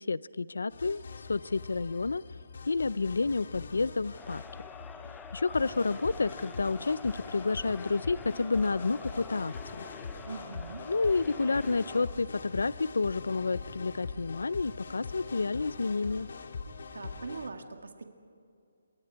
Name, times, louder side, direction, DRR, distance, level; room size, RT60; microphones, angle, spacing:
voice 1, 0.0-2.2 2.7-4.4 5.3-9.9 10.9-16.3, left 3 dB, 90° left, 19 dB, 0.4 m, -30 dB
sound 1, 0.7-17.5, left 4 dB, 60° left, 1.7 m, -43 dB
Crowd, 4.1-12.2, left 5 dB, 5° left, 0.6 m, -48 dB
voice 2, 10.2-10.8 16.9-18.0, right 4 dB, 80° right, 5 dB, 1.9 m, -41 dB
28.0 x 23.0 x 4.7 m, 2.4 s
hypercardioid pair, 165°, 0 cm